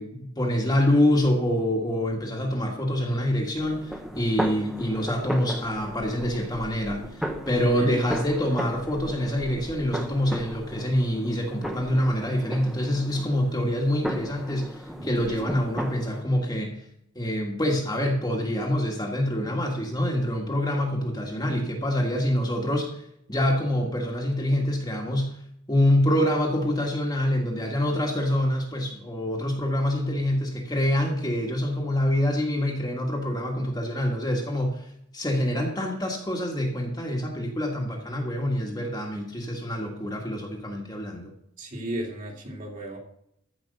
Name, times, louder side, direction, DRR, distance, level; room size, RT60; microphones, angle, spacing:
voice 1, 0.0-16.8 17.2-25.4 25.7-41.3, left 1 dB, 20° left, 0 dB, 1.6 m, -26 dB
sound 1, 3.5-16.2, equal, ahead, 1.0 m, -36 dB
voice 2, 15.0-15.4 41.6-43.0, right 1 dB, 40° right, -1 dB, 2.8 m, -34 dB
14.5 x 5.3 x 6.5 m, 0.73 s
head